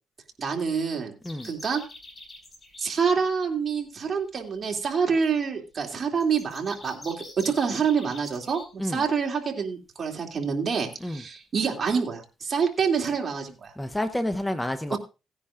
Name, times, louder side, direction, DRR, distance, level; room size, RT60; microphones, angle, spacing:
voice 1, 0.4-1.1 1.4-1.8 2.8-13.7 14.9-15.0, right 6 dB, 40° right, 2.7 m, -27 dB
sound 1, 1.2-2.9 6.2-8.7, left 2 dB, 30° left, 5.1 m, -45 dB
voice 2, 13.8-15.0, left 1 dB, 10° left, 0.8 m, -29 dB
18.0 x 10.0 x 2.5 m
cardioid pair, 90°, 0 cm